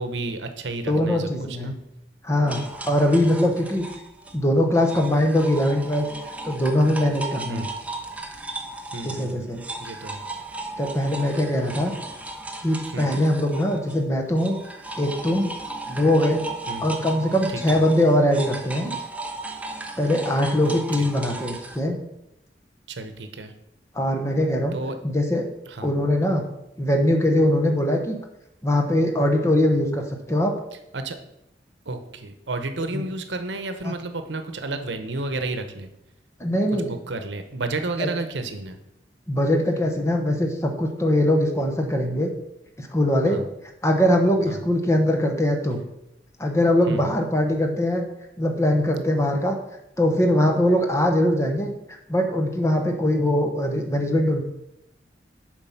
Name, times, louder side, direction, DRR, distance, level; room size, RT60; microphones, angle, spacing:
voice 1, 0.0-1.8 3.0-3.2 7.5-7.7 8.9-9.5 9.8-10.2 12.9-13.2 16.7-16.9 17.5-17.8 20.6-21.1 22.9-23.5 24.7-24.9 25.7-25.9 30.9-31.2 31.9-35.9 36.8-38.8 43.3-43.5 44.5-44.6 46.9-47.1, right 2 dB, 85° right, 8 dB, 0.9 m, -32 dB
voice 2, 0.9-1.7 2.2-3.9 4.3-6.1 6.4-7.7 9.0-9.6 10.8-11.9 12.6-14.6 15.0-15.5 15.9-16.4 16.8-18.9 20.0-22.0 23.9-24.8 25.0-25.5 25.8-26.4 26.8-28.2 28.6-30.5 32.9-33.0 33.8-33.9 36.4-36.9 38.0-38.1 39.3-42.3 42.8-43.4 43.8-45.8 46.4-48.1 48.4-49.6 50.0-51.7 52.1-54.4, left 1 dB, 15° left, 3 dB, 1.0 m, -21 dB
sound 1, 2.5-14.0 14.4-21.8, right 2 dB, 10° right, 0.6 m, -36 dB
7.5 x 4.8 x 5.7 m, 0.84 s
head